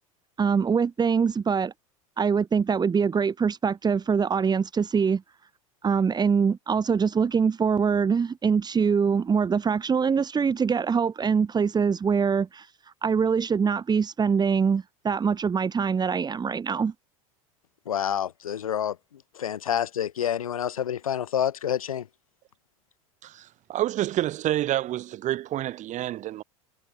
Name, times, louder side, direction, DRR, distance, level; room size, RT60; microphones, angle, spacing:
voice 1, 0.4-1.7 2.2-5.2 5.8-16.9, right 6 dB, 25° right, 3.7 m, -24 dB
voice 2, 17.9-19.0 19.4-22.1, left 9 dB, 85° left, 2.0 m, -28 dB
voice 3, 23.2-26.4, right 14 dB, 45° right, 5.6 m, -28 dB
hypercardioid pair, 85°, 18 cm